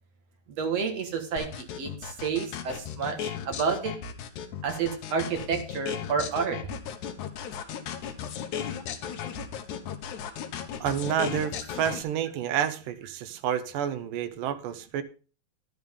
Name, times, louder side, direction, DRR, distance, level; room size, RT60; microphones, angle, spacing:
voice 1, 0.5-3.9 4.6-6.6, right 5 dB, 55° right, 4 dB, 2.4 m, -30 dB
sound 1, 1.4-12.0, left 8 dB, 70° left, 2.4 m, -35 dB
voice 2, 10.8-15.0, right 9 dB, 80° right, 11 dB, 2.5 m, -29 dB
11.5 x 11.0 x 3.6 m, 0.35 s
omnidirectional pair, 3.9 m